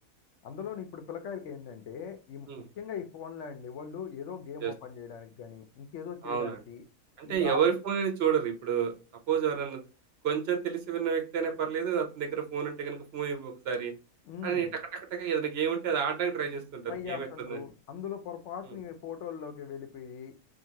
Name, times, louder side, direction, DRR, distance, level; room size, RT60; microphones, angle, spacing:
voice 1, 0.4-2.5 2.8-6.8 7.2-7.6 14.3-14.7 16.9-20.3, left 7 dB, 65° left, 6 dB, 0.7 m, -40 dB
voice 2, 6.2-6.6 7.2-8.9 9.3-9.8 10.2-13.9 14.4-17.6, right 7 dB, 55° right, 4 dB, 0.7 m, -30 dB
2.7 x 2.5 x 2.7 m, 0.34 s
omnidirectional pair, 1.6 m